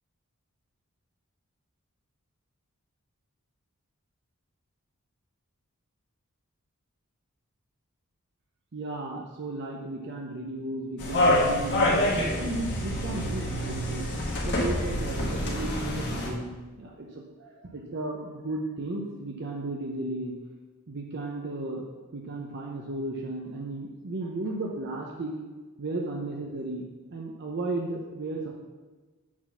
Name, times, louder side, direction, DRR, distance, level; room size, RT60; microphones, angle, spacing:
voice 1, 8.7-12.0 12.4-14.1 14.4-20.3 20.9-21.9 22.1-25.3 25.8-26.9 27.1-28.5, right 2 dB, 50° right, -1 dB, 0.7 m, -34 dB
sound 1, 11.0-16.3, left 1 dB, 55° left, 1.3 m, -26 dB
7.4 x 4.0 x 5.6 m, 1.3 s
head